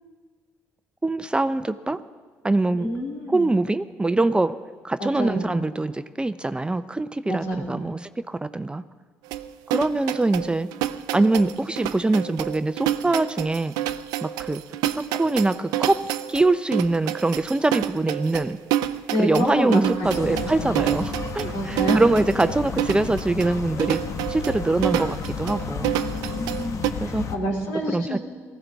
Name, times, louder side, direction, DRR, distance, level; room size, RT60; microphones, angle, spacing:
voice 1, 1.0-2.0 2.4-2.9 3.3-4.6 4.8-8.0 8.3-8.8 9.7-10.7 11.1-13.7 14.2-14.6 15.1-18.6 19.2-24.0 24.3-25.9 27.0-27.3 27.9-28.2, right 2 dB, 15° right, 12 dB, 0.5 m, -23 dB
voice 2, 2.8-3.5 5.0-5.6 7.3-7.8 19.1-20.8 21.5-22.2 26.4-28.2, equal, 85° left, -1 dB, 2.9 m, -28 dB
sound 1, 9.3-26.9, right 12 dB, 85° right, 0.5 m, -28 dB
sound 2, 20.0-27.4, left 5 dB, 50° left, 1.0 m, -32 dB
19.0 x 14.5 x 3.5 m, 1.5 s
supercardioid pair, 70°, 7 cm